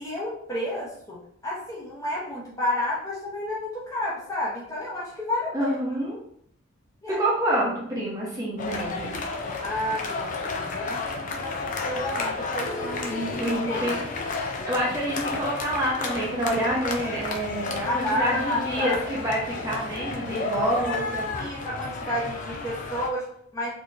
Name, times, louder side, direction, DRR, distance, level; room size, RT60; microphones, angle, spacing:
voice 1, 0.0-5.7 7.0-7.2 9.6-13.2 13.6-13.9 17.9-19.0 21.4-23.7, left 1 dB, 15° left, -6 dB, 0.8 m, -31 dB
voice 2, 5.5-6.2 7.2-9.1 13.1-13.9 14.7-21.3, right 1 dB, 15° right, -5 dB, 0.8 m, -27 dB
sound 1, 8.6-23.1, left 3 dB, 35° left, 0.4 m, -32 dB
4.2 x 2.8 x 2.5 m, 0.67 s
head